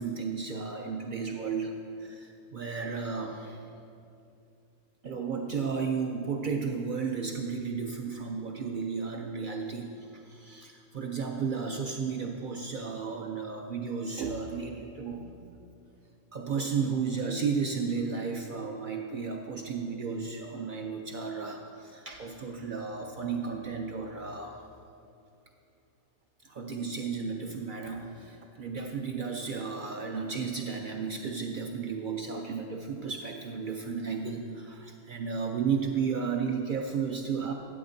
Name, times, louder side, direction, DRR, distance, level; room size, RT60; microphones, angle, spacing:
voice 1, 0.0-3.6 5.0-15.3 16.3-24.6 26.4-37.5, right 5 dB, 70° right, 2 dB, 0.4 m, -33 dB
12.5 x 8.6 x 2.6 m, 2.6 s
omnidirectional pair, 1.4 m